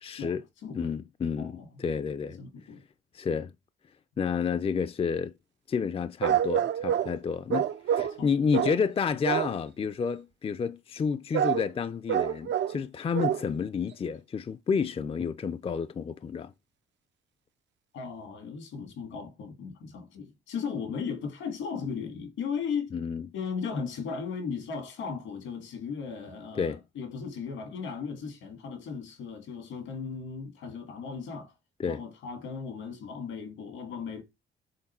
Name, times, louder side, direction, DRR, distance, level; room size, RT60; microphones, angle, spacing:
voice 1, 0.0-0.4 0.7-2.4 3.1-3.5 4.2-5.3 5.7-16.5 22.9-23.2 26.6-26.8 31.8-32.0, left 6 dB, 30° left, 0.5 m, -30 dB
voice 2, 0.6-0.9 1.4-1.7 2.4-2.8 8.2-8.3 17.9-22.9 23.3-31.5 31.8-34.2, left 6 dB, 80° left, 1.8 m, -36 dB
sound 1, 6.2-7.2 7.5-8.2 8.5-8.8 9.3-9.6 11.3-11.6 12.1-12.8 13.1-13.5 13.9-14.0, right 10 dB, 65° right, 0.6 m, -27 dB
6.5 x 3.7 x 4.3 m
cardioid pair, 90°, 20 cm